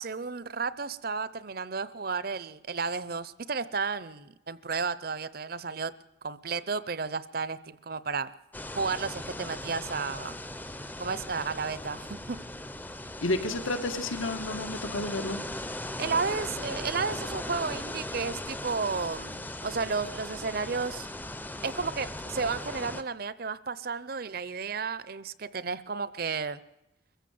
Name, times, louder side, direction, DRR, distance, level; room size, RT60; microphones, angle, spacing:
voice 1, 0.0-5.9 6.2-8.3 8.7-10.4 11.0-12.4 16.0-21.1 21.6-26.6, right 4 dB, 50° right, 17 dB, 0.7 m, -32 dB
sound 1, 8.5-23.0, left 1 dB, 10° left, 0.6 m, -38 dB
voice 2, 13.2-15.4, left 2 dB, 90° left, 7 dB, 2.3 m, -31 dB
23.0 x 15.0 x 7.7 m, 0.92 s
head